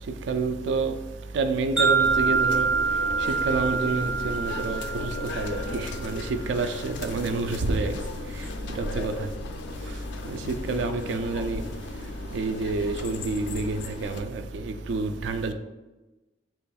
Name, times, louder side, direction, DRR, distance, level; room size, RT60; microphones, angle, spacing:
voice 1, 0.3-0.9 1.3-2.7 3.2-7.9 8.8-9.1 10.3-11.6 12.3-15.5, right 3 dB, 75° right, 0.3 m, -28 dB
Wind chime, 1.8-6.1, right 5 dB, ahead, 0.7 m, -26 dB
sound 1, 2.0-14.2, left 3 dB, 70° left, 0.3 m, -36 dB
4.2 x 3.0 x 2.3 m
head